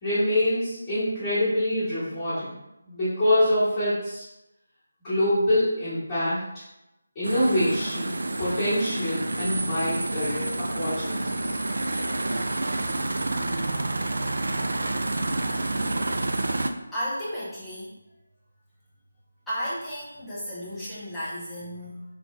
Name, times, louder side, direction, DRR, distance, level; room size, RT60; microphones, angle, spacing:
voice 1, 0.0-2.5 2.8-4.2 5.0-6.4 7.1-8.1 8.4-11.4, left 1 dB, 20° left, -15 dB, 1.5 m, -25 dB
sound 1, 7.2-16.7, right 2 dB, 60° right, 0.3 m, -28 dB
voice 2, 16.9-18.0 19.5-22.0, equal, 5° left, -13 dB, 0.9 m, -33 dB
3.3 x 2.6 x 3.2 m, 0.92 s
figure-of-eight pair, 155°, 0 cm